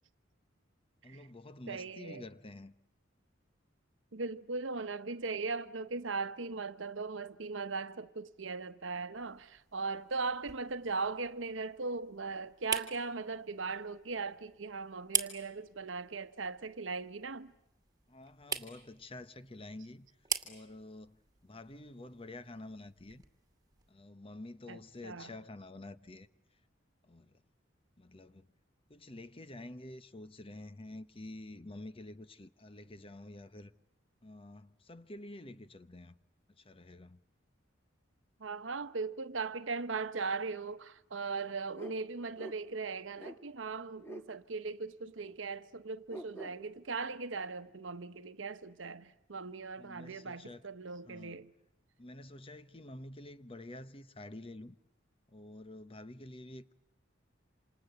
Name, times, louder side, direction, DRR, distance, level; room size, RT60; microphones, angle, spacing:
voice 1, 1.0-2.7 18.1-20.1 20.4-23.2 23.9-26.3 27.0-27.4 28.0-28.5 28.9-33.7 34.2-36.1 36.5-37.2 49.8-50.6 51.1-51.4 52.0-54.8 55.3-56.7, left 2 dB, 30° left, 1.0 m, -49 dB
voice 2, 1.7-2.2 4.1-17.5 24.7-25.3 38.4-51.5, right 4 dB, 75° right, 1.0 m, -39 dB
sound 1, 9.1-23.9, right 6 dB, 20° right, 2.2 m, -44 dB
sound 2, 41.7-42.0 42.4-42.5 43.2-43.4 44.0-44.3 45.2-45.3 46.1-46.5, right 1 dB, 15° left, 2.1 m, -46 dB
28.0 x 27.0 x 7.9 m
head